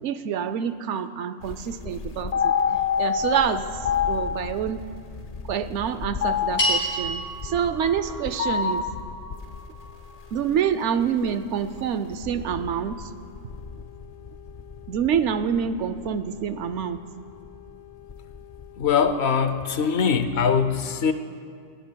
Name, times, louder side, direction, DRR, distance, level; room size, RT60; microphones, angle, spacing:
voice 1, 0.0-4.8 5.5-8.9 10.3-13.1 14.9-17.0, right 8 dB, 75° right, 12 dB, 0.9 m, -27 dB
sound 1, 1.4-19.1, left 7 dB, 50° left, 0.5 m, -31 dB
sound 2, 6.6-11.0, equal, 90° left, 4.5 m, -31 dB
voice 2, 18.8-21.1, left 6 dB, 65° left, 9 dB, 0.9 m, -22 dB
20.0 x 17.0 x 2.3 m, 2.3 s
omnidirectional pair, 1.2 m